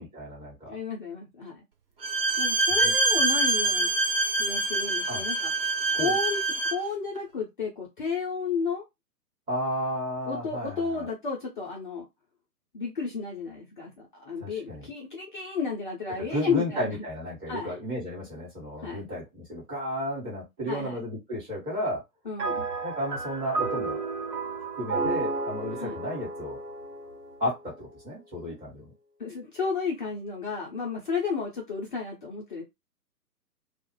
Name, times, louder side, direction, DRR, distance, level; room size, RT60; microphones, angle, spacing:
voice 1, 0.0-0.8 2.8-2.9 5.1-5.2 6.0-6.1 9.5-11.1 14.4-14.9 16.2-22.0 22.8-24.0 24.8-26.6 27.4-28.8, left 1 dB, 10° right, -5 dB, 1.1 m, -33 dB
voice 2, 0.7-1.6 2.4-3.9 4.4-5.5 5.9-8.8 10.3-12.1 12.7-17.0 17.5-17.7 18.8-19.1 20.7-21.0 22.2-22.7 25.8-26.0 29.2-32.6, left 5 dB, 30° left, -2 dB, 0.6 m, -32 dB
Bowed string instrument, 2.0-6.9, right 3 dB, 40° right, 0.4 m, -25 dB
sound 1, 22.4-27.9, right 4 dB, 75° right, 1.0 m, -32 dB
2.3 x 2.0 x 3.0 m, 0.20 s
figure-of-eight pair, 125°, 49 cm